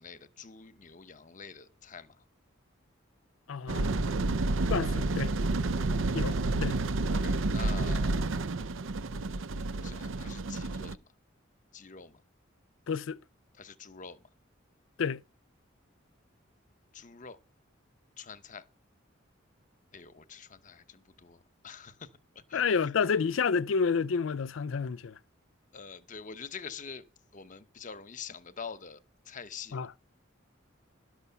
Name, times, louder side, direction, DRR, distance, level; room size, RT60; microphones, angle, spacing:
voice 1, 0.0-2.2 7.1-8.4 9.8-11.0 11.7-12.2 13.6-14.2 16.9-17.4 18.2-18.6 19.9-22.1 22.3-22.6 25.7-27.1 27.3-29.0 29.3-29.9, left 6 dB, 40° left, 0.9 m, -46 dB
voice 2, 3.5-4.0 4.7-5.3 6.1-6.8 12.9-13.2 15.0-15.2 22.5-25.2 29.7-30.0, left 5 dB, 90° left, 0.5 m, -30 dB
sound 1, 3.7-11.0, right 2 dB, 90° right, 0.6 m, -30 dB
12.0 x 6.4 x 6.8 m
head